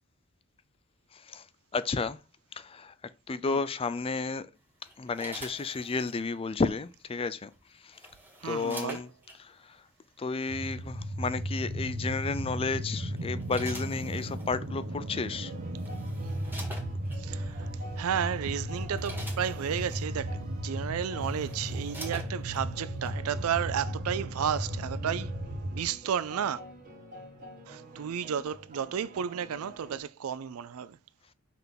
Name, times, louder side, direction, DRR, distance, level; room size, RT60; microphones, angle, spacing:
voice 1, 1.7-2.2 2.5-2.9 3.3-4.5 5.0-7.5 7.8-8.0 8.4-9.1 9.4-9.8 10.2-15.5, left 4 dB, 25° left, 0.4 m, -32 dB
sound 1, 4.8-6.2 7.5-9.4 10.4-10.7 12.3-12.6 13.2-14.5 15.3-15.4 15.7-17.2 17.9-18.1 18.5-20.0 20.7-20.8 21.1-22.6 23.1-23.2, right 1 dB, 10° right, 1.4 m, -46 dB
voice 2, 8.4-9.0 17.2-17.7 18.0-26.6 27.7-31.0, right 8 dB, 80° right, 0.4 m, -33 dB
sound 2, 10.5-25.9, right 1 dB, 55° right, 1.0 m, -35 dB
sound 3, 15.4-30.0, right 1 dB, 40° right, 1.8 m, -49 dB
5.8 x 3.6 x 5.7 m
head